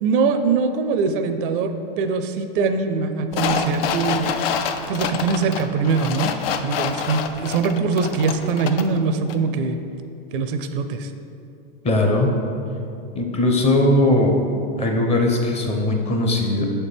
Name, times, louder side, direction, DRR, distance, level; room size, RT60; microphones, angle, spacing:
voice 1, 0.0-4.6 4.9-6.3 6.6-9.8 10.3-11.1, right 4 dB, 60° right, 8 dB, 0.5 m, -22 dB
sound 1, 3.3-9.0 9.3-9.4, left 7 dB, 75° left, 0.5 m, -27 dB
voice 2, 11.8-12.3 13.1-14.5 14.8-16.6, left 1 dB, 20° left, 2 dB, 0.7 m, -19 dB
6.8 x 4.3 x 3.4 m, 2.6 s
hypercardioid pair, 120°, 30 cm